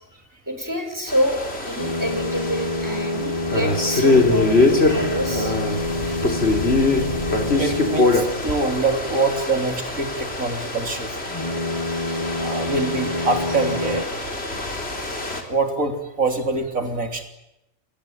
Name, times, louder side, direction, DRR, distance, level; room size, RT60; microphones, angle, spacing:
voice 1, 0.5-5.5, equal, 15° right, 6 dB, 5.8 m, -27 dB
sound 1, 1.1-15.4, left 3 dB, 50° left, 4.0 m, -24 dB
sound 2, 1.8-8.6 11.3-14.0, left 2 dB, 25° left, 1.5 m, -27 dB
voice 2, 7.6-11.2 12.4-14.7 15.5-17.2, right 3 dB, 85° right, 6 dB, 4.0 m, -25 dB
30.0 x 21.5 x 9.0 m, 0.88 s
omnidirectional pair, 1.4 m